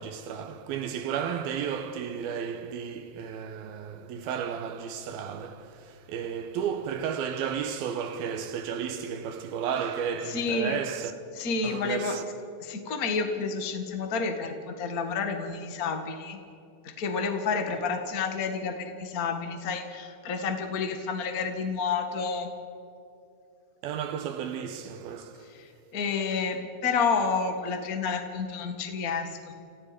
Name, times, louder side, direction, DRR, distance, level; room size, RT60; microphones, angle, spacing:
voice 1, 0.0-11.1 11.6-12.2 23.8-25.5, right 7 dB, 75° right, 2.6 m, -33 dB
voice 2, 10.3-10.8 11.4-12.2 12.6-16.4 16.8-22.5 25.5-29.5, left 5 dB, 45° left, 1.1 m, -30 dB
30.0 x 17.0 x 5.2 m
omnidirectional pair, 4.8 m